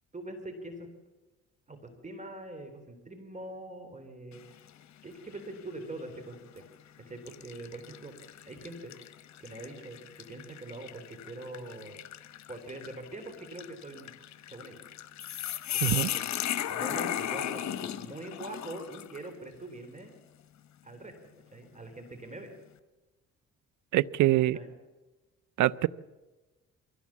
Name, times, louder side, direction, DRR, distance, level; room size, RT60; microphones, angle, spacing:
voice 1, 0.1-0.9 1.7-4.6 5.0-6.6 7.1-8.9 9.4-12.0 12.5-14.1 14.5-14.8 15.7-16.2 16.7-20.1 20.8-21.1 21.5-22.5 24.5-24.7, right 2 dB, 25° right, 7 dB, 3.4 m, -43 dB
sound 1, 4.3-4.8 5.3-5.5 6.4-6.6 7.3-19.3, left 10 dB, 65° left, 1.2 m, -37 dB
voice 2, 23.9-24.6 25.6-25.9, right 15 dB, 80° right, 20 dB, 0.6 m, -24 dB
23.5 x 16.5 x 7.4 m, 1.2 s
cardioid pair, 90°, 30 cm